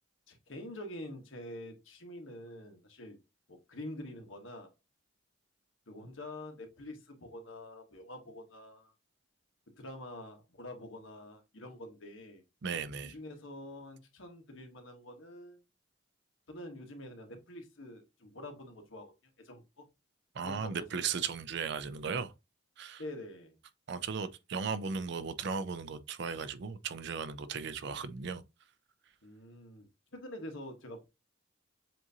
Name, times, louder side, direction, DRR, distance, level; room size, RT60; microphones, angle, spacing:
voice 1, 0.3-3.2 3.5-4.7 5.9-8.9 9.7-12.4 13.0-15.6 16.5-19.1 19.4-19.9 20.4-21.1 23.0-23.5 29.2-31.1, left 1 dB, 80° left, 1.2 m, -46 dB
voice 2, 12.6-13.1 20.3-22.3 22.8-23.0 23.9-28.4, right 5 dB, 55° right, 0.4 m, -36 dB
7.4 x 2.6 x 2.7 m
head